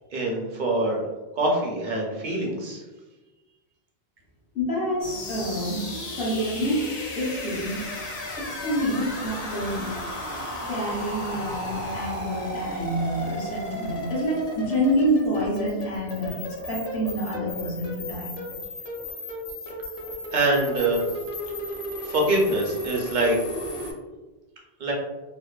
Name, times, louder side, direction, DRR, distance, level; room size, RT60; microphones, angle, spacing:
voice 1, 0.1-1.0 1.4-2.8 20.3-21.0 22.0-23.4 24.8-24.9, right 2 dB, 60° right, -1 dB, 0.6 m, -24 dB
voice 2, 4.5-5.8 6.2-6.9 7.1-7.8 8.4-9.9 10.7-18.3, equal, 65° left, -5 dB, 1.0 m, -27 dB
sound 1, 5.0-23.9, equal, 50° left, 0.5 m, -34 dB
2.6 x 2.1 x 2.2 m, 1.2 s
omnidirectional pair, 1.0 m